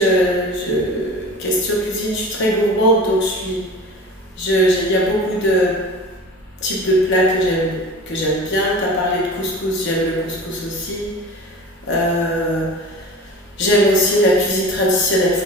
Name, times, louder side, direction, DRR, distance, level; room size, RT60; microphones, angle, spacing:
voice 1, 0.0-3.6 4.4-5.8 6.6-7.8 8.1-11.1 11.9-12.7 13.6-15.4, equal, 55° left, -3 dB, 0.6 m, -19 dB
3.6 x 2.2 x 2.3 m, 1.3 s
head